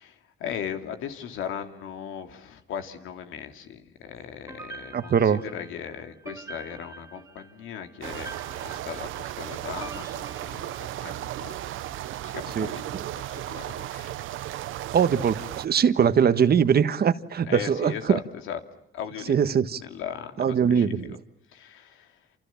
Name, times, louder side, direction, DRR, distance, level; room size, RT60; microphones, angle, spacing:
voice 1, 0.0-11.6 12.2-14.2 17.4-18.6 18.9-19.4 19.8-20.9 21.5-22.3, left 8 dB, 90° left, 2.9 m, -38 dB
sound 1, 4.5-11.4, right 3 dB, 15° right, 2.9 m, -46 dB
voice 2, 4.9-5.4 12.5-12.7 12.9-13.0 14.9-18.2 19.3-19.8 20.4-21.2, right 7 dB, 50° right, 1.5 m, -22 dB
sound 2, 8.0-15.7, right 13 dB, 85° right, 1.0 m, -35 dB
28.5 x 28.0 x 7.3 m
cardioid pair, 90°, 20 cm